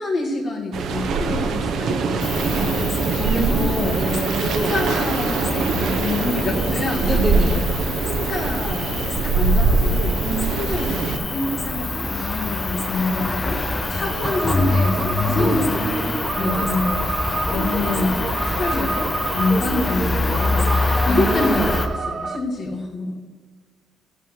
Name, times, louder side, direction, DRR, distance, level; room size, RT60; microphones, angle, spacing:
voice 1, 0.0-2.9 3.3-4.0 4.4-7.6 8.0-10.2 10.5-17.1 17.5-18.2 18.5-23.2, left 2 dB, 60° left, -5 dB, 1.7 m, -27 dB
sound 1, 0.7-11.2, right 4 dB, 70° right, 0.9 m, -23 dB
Cricket, 2.2-21.9, left 2 dB, 25° left, 0.9 m, -26 dB
voice 2, 3.2-4.8 7.0-7.6 10.2-10.5 10.8-11.1 15.3-15.6 16.4-16.7 21.1-21.7, right 1 dB, 5° left, 1 dB, 2.0 m, -26 dB
sound 2, 14.2-22.4, right 3 dB, 40° right, 0.8 m, -28 dB
11.5 x 5.6 x 6.3 m, 1.4 s
supercardioid pair, 75°, 0 cm